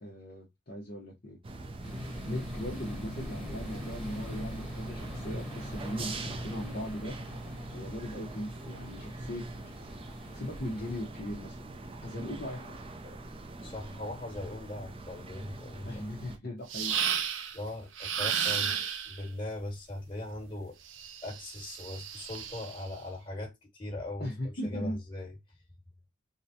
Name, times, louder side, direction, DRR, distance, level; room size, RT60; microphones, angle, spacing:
voice 1, 0.0-1.4 2.3-7.2 7.7-9.5 10.3-11.7 12.0-12.8 15.8-16.9 24.2-25.0, equal, 50° left, 0.9 m, -38 dB
sound 1, 1.4-16.4, right 2 dB, 30° right, 0.5 m, -42 dB
sound 2, 1.8-11.0, left 1 dB, ahead, 1.1 m, -44 dB
voice 2, 13.6-16.0 17.5-20.8 21.2-24.3 24.6-25.3, left 1 dB, 25° left, 1.5 m, -39 dB
sound 3, 16.7-17.6 18.0-19.2 20.9-22.8, right 8 dB, 80° right, 0.5 m, -33 dB
3.9 x 2.1 x 2.7 m
head